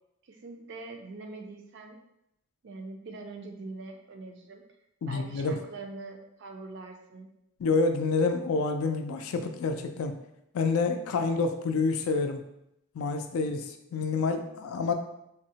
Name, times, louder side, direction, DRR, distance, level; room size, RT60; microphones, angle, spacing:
voice 1, 0.2-2.0 2.6-4.6 5.0-7.3, right 3 dB, 55° right, 4 dB, 0.4 m, -43 dB
voice 2, 5.0-5.5 7.6-10.1 10.5-12.4 12.9-14.9, left 4 dB, 80° left, 6 dB, 0.3 m, -28 dB
3.5 x 2.0 x 2.8 m, 0.82 s
head